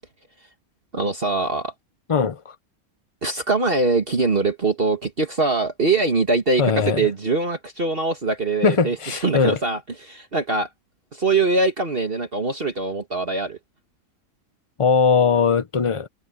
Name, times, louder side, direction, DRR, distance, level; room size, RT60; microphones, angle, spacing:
voice 1, 0.9-1.7 3.2-9.0 9.2-10.7 11.1-13.6, right 3 dB, 40° right, 2.0 m, -22 dB
voice 2, 2.1-2.6 6.6-7.0 8.6-9.6 14.8-16.1, left 5 dB, 30° left, 0.7 m, -20 dB
omnidirectional pair, 1.5 m